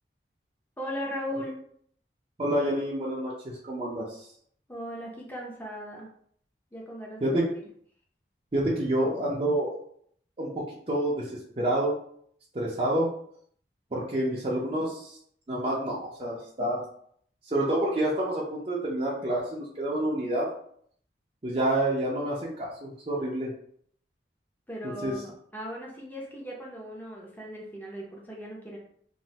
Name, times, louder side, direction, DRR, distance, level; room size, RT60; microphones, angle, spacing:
voice 1, 0.8-1.6 4.7-6.1 6.7-7.4 24.7-28.8, equal, 10° left, -3 dB, 0.6 m, -38 dB
voice 2, 2.4-4.3 7.2-7.5 8.5-9.8 10.4-12.0 12.5-13.1 13.9-15.2 15.5-16.8 17.4-20.5 21.4-23.5 24.8-25.1, right 1 dB, 35° right, -6 dB, 0.5 m, -28 dB
3.1 x 2.5 x 2.8 m, 0.63 s
head